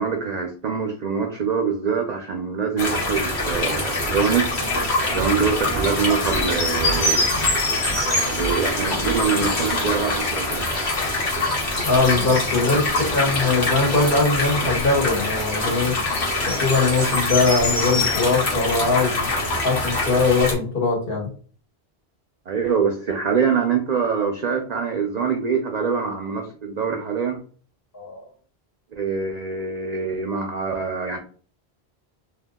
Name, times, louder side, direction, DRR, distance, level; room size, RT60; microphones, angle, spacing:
voice 1, 0.0-4.5 5.1-7.3 8.3-10.7 12.6-12.8 22.5-27.4 28.9-31.2, right 6 dB, 55° right, 3 dB, 0.5 m, -24 dB
sound 1, 2.8-20.5, left 2 dB, 80° left, 1.4 m, -24 dB
voice 2, 11.8-15.9 16.4-19.3 19.6-21.3 27.9-28.2, left 3 dB, 60° left, -1 dB, 1.4 m, -21 dB
2.7 x 2.3 x 3.5 m, 0.42 s
omnidirectional pair, 1.1 m